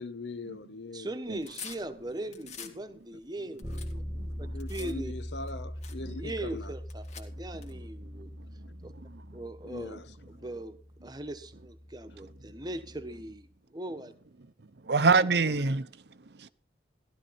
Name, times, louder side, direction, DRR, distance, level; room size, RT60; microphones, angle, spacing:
voice 1, 0.0-1.1 3.7-3.8 4.5-6.7 9.6-10.0, left 3 dB, 75° left, 1.0 m, -41 dB
voice 2, 0.9-3.7 4.4-5.1 6.1-8.3 8.8-8.9 9.3-14.1, right 1 dB, 20° right, 1.1 m, -40 dB
sound 1, 1.2-2.8 3.2-4.9 5.5-5.6 5.8-6.0 6.8-7.7, left 7 dB, 40° left, 1.9 m, -46 dB
voice 3, 3.4-4.7 6.0-6.2 7.5-9.4 10.4-10.5 12.1-12.6 14.6-16.5, right 4 dB, 65° right, 0.7 m, -31 dB
Bass guitar, 3.6-13.4, equal, 15° left, 2.4 m, -42 dB
15.5 x 12.0 x 4.3 m
head